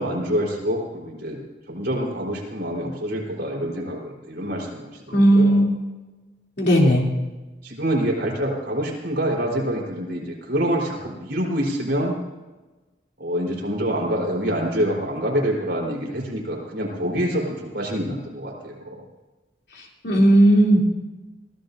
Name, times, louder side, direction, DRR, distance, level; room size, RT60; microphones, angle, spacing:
voice 1, 0.0-1.4 1.7-5.6 6.7-6.9 7.6-12.1 13.2-19.0, equal, 70° right, -2 dB, 4.0 m, -26 dB
voice 2, 5.1-5.7 6.6-7.1 20.0-20.8, right 1 dB, 70° left, -1 dB, 3.0 m, -15 dB
23.0 x 15.5 x 2.7 m, 1.2 s
head